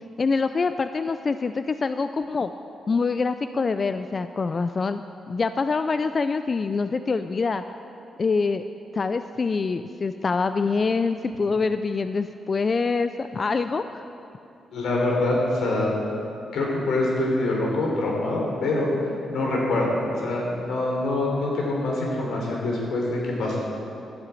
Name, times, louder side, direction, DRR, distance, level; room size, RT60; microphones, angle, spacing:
voice 1, 0.2-2.5 2.9-5.0 5.3-7.6 8.2-8.6 8.9-14.0, left 4 dB, 35° left, 10 dB, 0.4 m, -25 dB
voice 2, 14.7-15.9 16.5-18.9 19.3-23.6, left 2 dB, 90° left, -2 dB, 3.6 m, -25 dB
12.5 x 8.8 x 8.2 m, 2.6 s
cardioid pair, 125°, 0 cm